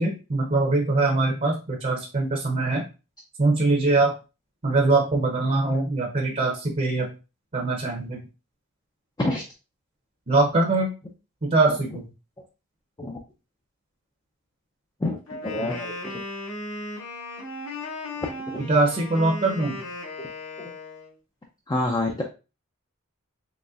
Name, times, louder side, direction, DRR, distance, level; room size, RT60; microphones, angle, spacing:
voice 1, 0.0-2.8 3.4-4.1 4.6-7.1 7.5-8.2 10.3-10.9 11.4-12.1 18.6-19.8, right 2 dB, 35° right, 0 dB, 0.7 m, -22 dB
Wind instrument woodwind instrument, 15.3-21.1, left 2 dB, 75° left, 1.5 m, -36 dB
voice 2, 15.4-15.9 18.5-18.7 21.7-22.2, left 2 dB, 20° left, 1 dB, 0.5 m, -26 dB
4.0 x 3.2 x 2.4 m, 0.30 s
head